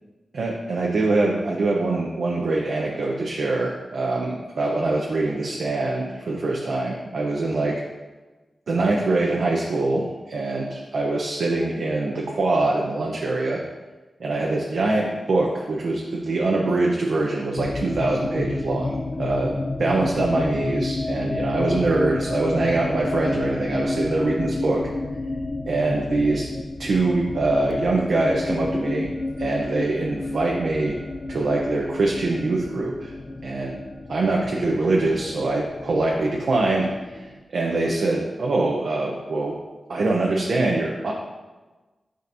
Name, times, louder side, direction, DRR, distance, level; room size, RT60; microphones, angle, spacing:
voice 1, 0.4-7.8 8.7-13.6 14.2-24.9 25.7-26.5 26.8-29.1 29.4-31.0 31.3-33.1 33.4-33.8 34.1-39.6 39.9-41.1, right 2 dB, 70° right, -2 dB, 0.7 m, -24 dB
sound 1, 17.6-37.4, left 2 dB, 40° left, 0.5 m, -30 dB
9.2 x 5.1 x 2.7 m, 1.2 s
wide cardioid pair, 150°, 0 cm